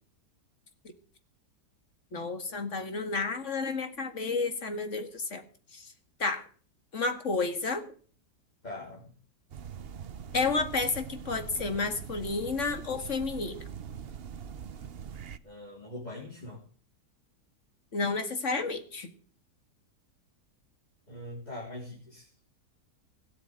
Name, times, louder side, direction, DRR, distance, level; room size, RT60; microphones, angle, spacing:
voice 1, 2.1-5.4 5.7-5.9 6.2-6.4 6.9-7.8 10.3-13.6 17.9-19.1, left 4 dB, 45° left, 7 dB, 2.2 m, -31 dB
voice 2, 8.6-9.1 15.4-16.6 21.1-22.3, left 1 dB, 25° left, -2 dB, 3.5 m, -42 dB
sound 1, 9.5-15.4, right 7 dB, 50° right, 0.8 m, -42 dB
17.5 x 7.5 x 8.8 m, 0.43 s
omnidirectional pair, 1.7 m